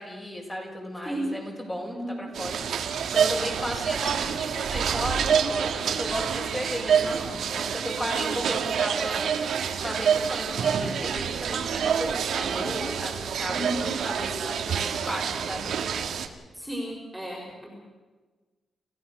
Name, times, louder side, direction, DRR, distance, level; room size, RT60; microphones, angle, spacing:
voice 1, 0.0-9.3 9.8-13.7 14.0-15.7, equal, 15° left, -1 dB, 6.7 m, -35 dB
voice 2, 1.9-2.2 8.0-8.4 13.5-13.9 16.5-17.7, right 1 dB, 5° right, -3 dB, 4.9 m, -34 dB
sound 1, 2.3-16.3, right 7 dB, 80° right, 1.9 m, -27 dB
29.0 x 16.0 x 6.7 m, 1.3 s
cardioid pair, 115°, 0 cm